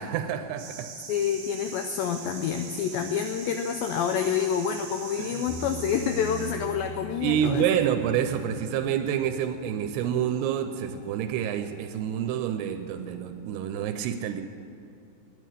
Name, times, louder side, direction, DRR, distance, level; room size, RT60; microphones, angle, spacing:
voice 1, 0.0-0.9 5.2-5.4 7.2-14.4, right 9 dB, 85° right, 8 dB, 2.7 m, -28 dB
sound 1, 0.6-6.5, right 6 dB, 60° right, 1.7 m, -42 dB
voice 2, 1.1-7.7, left 8 dB, 85° left, 6 dB, 2.0 m, -28 dB
sound 2, 5.5-13.4, equal, 65° left, 2.7 m, -43 dB
9.5 x 9.2 x 9.9 m, 2.6 s
omnidirectional pair, 4.7 m